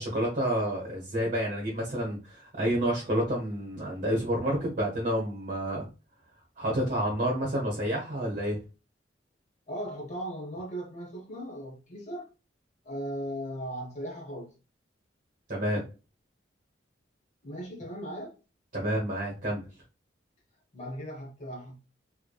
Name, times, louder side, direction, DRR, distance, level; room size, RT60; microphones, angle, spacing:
voice 1, 0.0-5.9 6.6-8.6 15.5-15.8 18.7-19.6, equal, 50° right, 0.9 m, -29 dB
voice 2, 9.7-12.3 12.8-14.5 17.4-18.3 20.7-21.8, equal, 40° left, 0.9 m, -37 dB
3.1 x 2.1 x 2.2 m
head